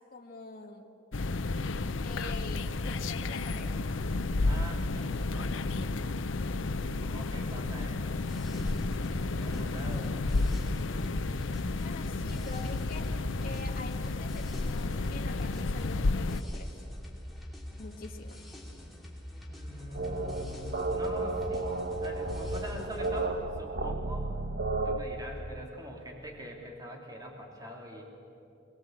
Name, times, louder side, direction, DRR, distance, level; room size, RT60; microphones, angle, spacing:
voice 1, 0.1-1.0 2.0-3.9 7.2-7.6 11.8-13.1 13.4-16.8 17.8-18.5, left 3 dB, 50° left, 1 dB, 1.6 m, -45 dB
sound 1, 1.1-16.4, left 3 dB, 75° left, 0.7 m, -32 dB
voice 2, 4.4-5.7 7.0-8.5 8.9-10.2 19.5-24.3 24.8-28.0, right 1 dB, 20° right, -1 dB, 3.1 m, -44 dB
sound 2, 8.1-23.3, left 1 dB, ahead, 2.9 m, -45 dB
sound 3, 19.9-25.0, right 2 dB, 55° right, 1.2 m, -33 dB
23.0 x 20.5 x 8.0 m, 2.7 s
head